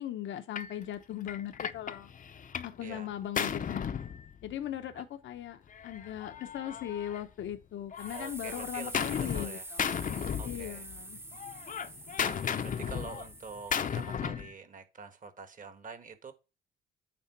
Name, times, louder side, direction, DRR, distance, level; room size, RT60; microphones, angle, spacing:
voice 1, 0.0-2.1 2.6-4.0 4.4-9.9 10.4-11.2, left 11 dB, 70° left, 0.9 m, -39 dB
Gunshot gunfire, 0.6-0.8 1.3-2.8 3.1-4.8 5.7-7.6 7.9-9.5 9.8-11.0 11.3-14.5, left 7 dB, 40° left, 0.7 m, -35 dB
sound 1, 8.0-14.1, right 2 dB, 10° right, 0.8 m, -46 dB
voice 2, 8.1-9.7 10.4-10.8 12.2-16.3, right 5 dB, 40° right, 1.5 m, -46 dB
8.8 x 3.6 x 6.0 m
cardioid pair, 90°, 20 cm